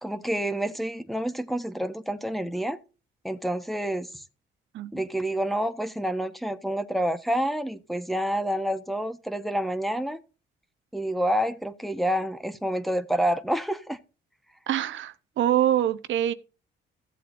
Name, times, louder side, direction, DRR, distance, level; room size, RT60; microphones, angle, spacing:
voice 1, 0.0-2.8 3.2-4.2 4.9-10.2 10.9-14.0, equal, ahead, 1.1 m, -28 dB
voice 2, 14.7-16.3, right 11 dB, 75° right, 0.8 m, -24 dB
16.0 x 7.6 x 2.5 m
cardioid pair, 90°, 20 cm